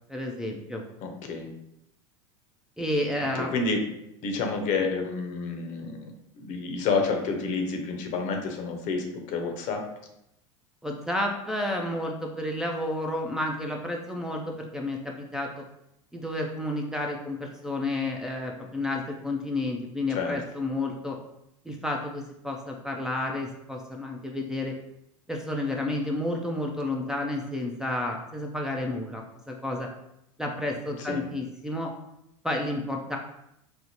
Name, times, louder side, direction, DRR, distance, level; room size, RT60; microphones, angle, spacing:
voice 1, 0.1-0.8 2.8-3.5 10.8-15.6 16.1-21.2 21.7-24.7 25.3-29.9 30.4-31.9 32.4-33.2, left 1 dB, 5° right, 0 dB, 0.4 m, -31 dB
voice 2, 1.0-1.5 3.3-3.8 4.2-9.9 20.1-20.4 31.0-31.2, left 4 dB, 50° left, 3 dB, 0.7 m, -29 dB
4.3 x 2.0 x 2.8 m, 0.81 s
hypercardioid pair, 85°, 17 cm